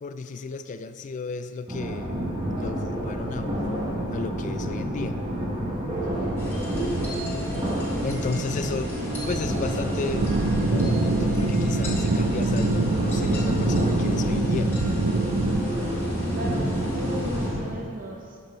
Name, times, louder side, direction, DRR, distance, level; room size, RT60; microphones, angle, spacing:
voice 1, 0.0-2.2 2.6-5.2 7.5-7.6 8.0-8.9 9.3-10.3 10.6-14.8, left 4 dB, 35° left, 9 dB, 0.3 m, -34 dB
sound 1, 1.7-17.6, right 1 dB, 20° right, 1.3 m, -28 dB
voice 2, 6.0-6.4 16.3-18.4, right 1 dB, 40° right, 0 dB, 0.6 m, -37 dB
sound 2, 6.4-17.5, equal, 10° left, 2.2 m, -39 dB
sound 3, 10.1-15.6, right 2 dB, 90° right, 0.6 m, -24 dB
9.3 x 6.8 x 4.4 m, 2.3 s
head